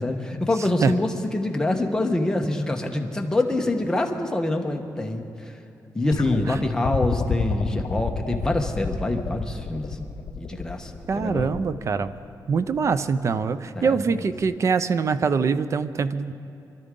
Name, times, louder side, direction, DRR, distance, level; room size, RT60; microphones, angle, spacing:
voice 1, 0.0-5.5 5.9-10.1 10.4-11.5 13.7-14.0, left 2 dB, 10° left, 2 dB, 1.1 m, -25 dB
sound 1, 6.1-13.3 14.4-14.5, left 6 dB, 50° left, 0.8 m, -31 dB
voice 2, 11.1-12.1 12.5-16.3, right 5 dB, 40° right, 13 dB, 0.5 m, -23 dB
25.5 x 12.5 x 3.8 m, 2.7 s
wide cardioid pair, 145°, 7 cm